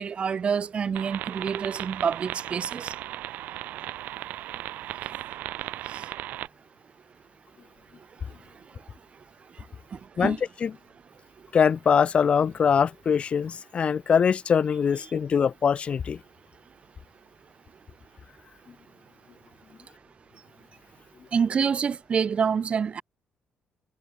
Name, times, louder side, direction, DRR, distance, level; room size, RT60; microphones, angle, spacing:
voice 1, 0.0-2.9 5.9-6.0 9.9-10.4 21.3-23.0, right 6 dB, 45° right, 2.9 m, -27 dB
sound 1, 0.9-6.5, right 14 dB, 85° right, 1.8 m, -36 dB
voice 2, 10.2-10.7 11.5-16.2, left 7 dB, 45° left, 0.6 m, -23 dB
cardioid pair, 95°, 3 cm